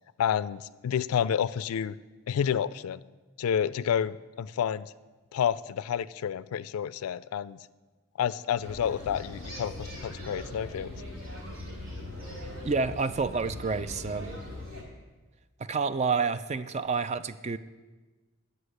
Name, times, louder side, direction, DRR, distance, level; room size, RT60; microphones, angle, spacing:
voice 1, 0.2-2.0 2.3-3.0 3.4-4.9 5.3-7.6 8.2-10.9, left 8 dB, 85° left, 17 dB, 0.3 m, -29 dB
sound 1, 8.6-14.8, left 1 dB, 70° right, 3.1 m, -40 dB
voice 2, 12.6-14.4 15.6-17.6, right 4 dB, 30° right, 13 dB, 0.3 m, -29 dB
9.9 x 5.4 x 7.9 m, 1.3 s
head